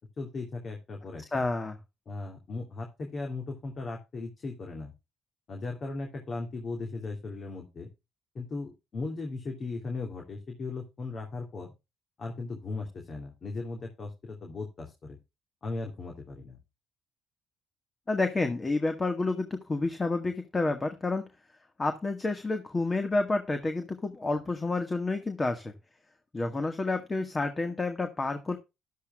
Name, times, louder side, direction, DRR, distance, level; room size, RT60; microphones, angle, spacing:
voice 1, 0.2-1.5 2.1-4.9 5.5-7.9 8.3-11.7 12.2-15.2 15.6-16.6, left 3 dB, 45° left, 2 dB, 3.0 m, -37 dB
voice 2, 1.3-1.8 18.1-21.3 21.8-25.7 26.3-28.6, left 3 dB, 25° left, 6 dB, 1.7 m, -29 dB
13.0 x 12.0 x 2.4 m, 0.26 s
supercardioid pair, 80°, 0 cm